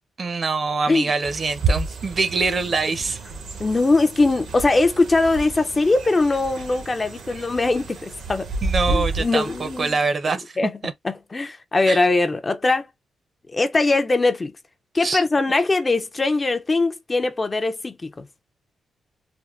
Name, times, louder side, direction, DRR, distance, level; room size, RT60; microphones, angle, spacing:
voice 1, 0.2-3.2 8.6-10.6 10.8-10.9 11.9-12.0 15.0-15.2, right 4 dB, 40° right, 0.6 m, -24 dB
sound 1, 1.2-9.9, right 3 dB, 75° right, 0.8 m, -30 dB
voice 2, 3.6-8.5 8.9-10.0 10.6-10.8 11.0-12.9 13.5-14.5 14.9-18.1, left 3 dB, 25° left, 0.4 m, -21 dB
3.4 x 2.2 x 2.4 m
cardioid pair, 115°, 0 cm